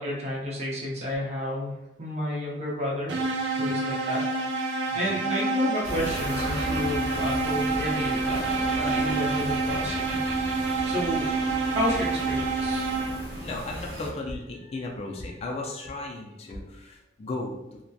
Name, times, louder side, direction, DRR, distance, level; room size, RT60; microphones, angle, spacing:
voice 1, 0.0-1.7 2.0-3.1 3.6-4.2 4.9-8.4 8.8-10.2 10.8-11.3 11.7-12.9, left 1 dB, 40° right, -4 dB, 0.6 m, -31 dB
sound 1, 3.1-13.4, right 3 dB, 90° right, 0.4 m, -28 dB
sound 2, 5.8-14.1, equal, 65° right, 0.9 m, -36 dB
voice 2, 13.1-17.8, left 2 dB, 35° left, 0 dB, 0.3 m, -36 dB
2.6 x 2.1 x 2.3 m, 0.90 s
head